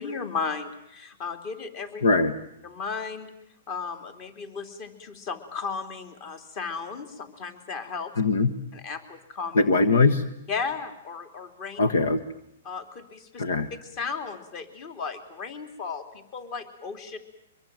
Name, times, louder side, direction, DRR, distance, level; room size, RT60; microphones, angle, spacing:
voice 1, 0.0-2.0 2.6-3.3 3.7-8.1 8.7-9.6 10.5-11.8 12.6-13.4 13.7-17.2, left 5 dB, 40° left, 8 dB, 3.4 m, -35 dB
voice 2, 2.0-2.3 8.2-8.5 9.5-10.2 11.8-12.2 13.4-13.7, left 3 dB, 80° left, 12 dB, 1.5 m, -21 dB
24.5 x 22.0 x 9.2 m, 0.79 s
hypercardioid pair, 140°, 0 cm